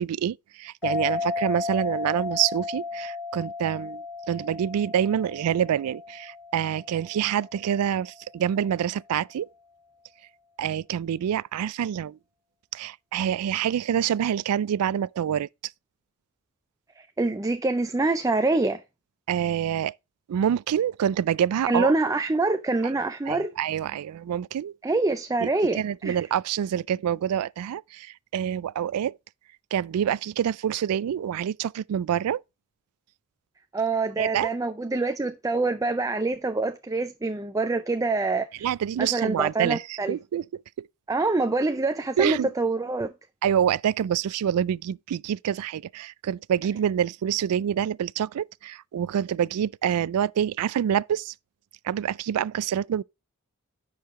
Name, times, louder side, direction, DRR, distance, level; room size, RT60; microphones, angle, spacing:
voice 1, 0.0-9.5 10.6-12.2 12.7-15.5 19.3-19.9 20.3-21.9 23.3-24.7 25.4-25.5 25.8-29.2 29.7-32.4 34.2-34.5 38.6-40.4 40.8-40.9 42.2-42.5 43.4-51.3 51.8-53.0, right 9 dB, 85° right, 0.3 m, -26 dB
sound 1, 0.8-7.9, left 4 dB, 10° left, 3.2 m, -34 dB
voice 2, 17.0-18.8 21.7-23.5 24.8-26.2 33.7-38.7 39.0-40.2 41.1-43.1, right 3 dB, 15° right, 0.4 m, -25 dB
10.5 x 4.7 x 3.6 m
head